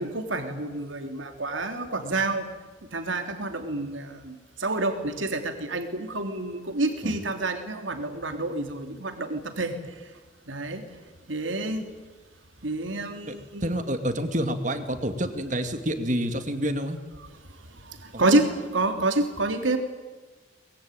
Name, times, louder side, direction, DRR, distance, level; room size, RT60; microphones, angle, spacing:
voice 1, 0.0-2.5 2.9-9.7 10.5-10.8 11.3-11.9 12.6-13.7 17.8-19.8, right 2 dB, 85° right, 6 dB, 3.2 m, -28 dB
voice 2, 13.6-17.0 18.1-18.4, equal, 40° right, 7 dB, 2.4 m, -28 dB
24.0 x 21.5 x 9.3 m, 1.3 s
head